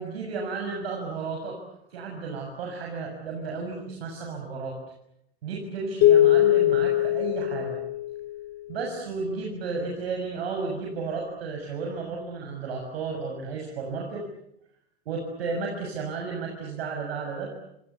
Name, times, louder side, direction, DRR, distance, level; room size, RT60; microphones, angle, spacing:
voice 1, 0.0-1.6 1.9-4.8 5.4-7.8 8.7-14.2 15.1-17.5, right 4 dB, 70° right, 1 dB, 7.1 m, -33 dB
sound 1, 6.0-8.6, left 12 dB, 45° left, 2.2 m, -21 dB
30.0 x 27.0 x 7.0 m, 0.80 s
hypercardioid pair, 90°, 31 cm